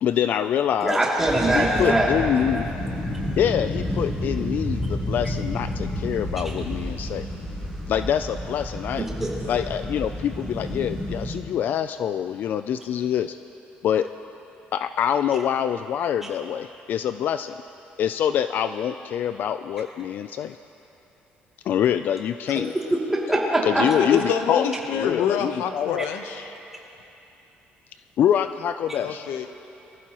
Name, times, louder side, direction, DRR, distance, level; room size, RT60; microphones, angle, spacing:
voice 1, 0.0-1.0 1.5-2.7 3.4-7.3 7.9-9.1 9.5-13.4 13.8-14.1 14.7-17.6 18.0-20.6 21.6-22.7 23.6-26.1 28.2-29.3, left 9 dB, 55° left, 11 dB, 0.3 m, -25 dB
voice 2, 0.8-2.1 9.2-9.3 23.1-23.8, right 1 dB, 10° right, -5 dB, 2.6 m, -21 dB
sound 1, 1.2-11.3, left 1 dB, 25° left, 3.5 m, -30 dB
voice 3, 24.0-26.5 29.0-29.5, left 8 dB, 85° left, 7 dB, 0.9 m, -26 dB
24.0 x 15.0 x 3.0 m, 3.0 s
cardioid pair, 150°, 4 cm